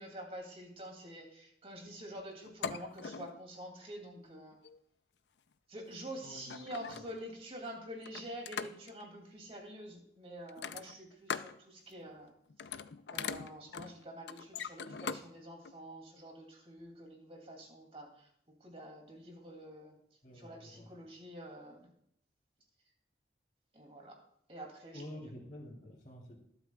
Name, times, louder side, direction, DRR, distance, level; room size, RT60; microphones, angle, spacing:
voice 1, 0.0-4.6 5.7-12.3 13.1-18.3 18.6-20.0 20.3-21.9 23.7-24.2 24.5-25.2, right 1 dB, 35° right, 1 dB, 2.5 m, -47 dB
sound 1, 2.4-3.4 4.5-4.8 5.9-6.0 6.4-7.3 8.0-9.0 10.5-11.6 11.9-12.2 12.5-15.3 15.6-15.7, left 6 dB, 85° left, 0.5 m, -41 dB
voice 2, 6.2-6.5 7.0-7.1 20.2-20.9 24.9-26.4, left 1 dB, 45° left, -3 dB, 3.1 m, -49 dB
20.5 x 8.3 x 2.3 m, 0.70 s
head